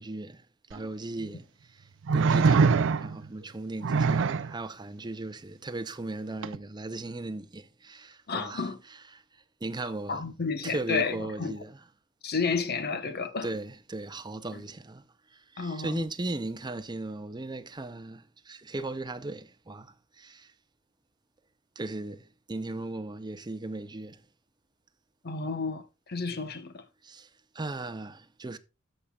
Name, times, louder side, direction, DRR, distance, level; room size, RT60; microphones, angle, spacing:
voice 1, 0.0-8.7 9.1-10.2 10.6-11.8 13.4-15.0 15.3-20.5 21.8-24.2 27.0-27.3 27.5-28.6, right 2 dB, 20° right, 0.6 m, -37 dB
sound 1, 0.7-0.8 2.1-3.3 3.8-4.5 6.4-6.6, right 5 dB, 60° right, 0.5 m, -23 dB
voice 2, 8.3-8.8 9.8-11.5 12.2-13.5 14.5-14.6 15.6-16.0 25.2-26.8, left 4 dB, 50° left, 1.0 m, -31 dB
13.0 x 6.6 x 2.3 m
head